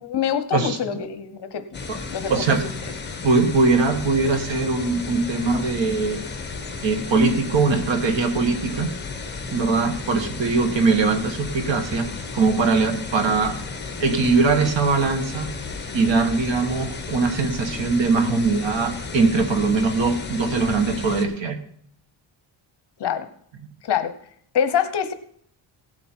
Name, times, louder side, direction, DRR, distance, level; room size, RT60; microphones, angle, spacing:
voice 1, 0.0-1.6 2.1-2.4 2.8-2.9 23.0-23.3 23.8-24.1 24.5-25.1, left 8 dB, 55° left, 10 dB, 1.0 m, -25 dB
voice 2, 0.5-1.0 1.9-2.0 2.3-2.6 3.2-6.2 6.8-8.9 9.5-12.1 12.3-13.6 14.0-15.5 15.9-21.6, right 4 dB, 60° right, 7 dB, 1.6 m, -21 dB
sound 1, 1.7-21.3, left 4 dB, 20° left, 1.3 m, -33 dB
16.5 x 7.6 x 4.5 m, 0.65 s
wide cardioid pair, 180°, 50 cm